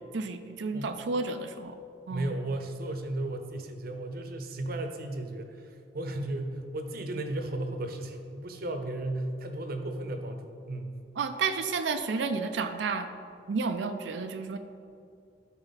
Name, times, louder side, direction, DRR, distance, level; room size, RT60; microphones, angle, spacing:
voice 1, 0.1-1.8 2.1-2.4 11.2-13.1 13.5-14.6, right 4 dB, 80° right, 7 dB, 0.4 m, -31 dB
voice 2, 2.1-10.9, right 1 dB, 55° right, 6 dB, 0.8 m, -35 dB
12.5 x 4.5 x 4.1 m, 2.4 s
head